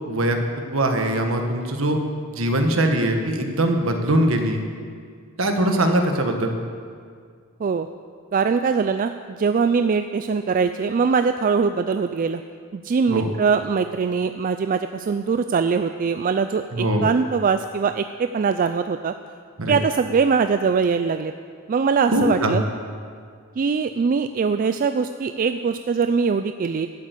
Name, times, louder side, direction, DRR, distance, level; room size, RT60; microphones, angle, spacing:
voice 1, 0.1-2.0 2.3-4.6 5.4-6.6 13.1-13.3 16.7-17.0 19.6-19.7 22.1-22.6, right 1 dB, 70° right, 4 dB, 1.4 m, -22 dB
voice 2, 8.3-12.4 12.7-19.1 19.7-21.3 21.7-22.6 23.6-26.9, right 5 dB, 40° right, 9 dB, 0.3 m, -22 dB
12.5 x 8.1 x 8.1 m, 2.1 s
head